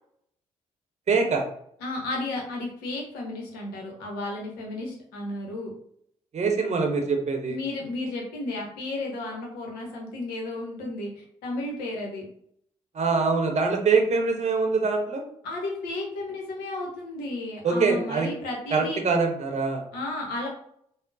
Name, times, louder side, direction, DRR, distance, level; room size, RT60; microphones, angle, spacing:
voice 1, 1.1-1.4 6.3-7.6 12.9-15.2 17.6-18.3 18.7-19.8, right 4 dB, 45° right, 3 dB, 0.7 m, -24 dB
voice 2, 1.8-5.7 7.5-12.2 15.4-19.0 19.9-20.5, left 2 dB, 75° left, 0 dB, 0.8 m, -33 dB
3.6 x 2.1 x 2.5 m, 0.67 s
hypercardioid pair, 40°, 16 cm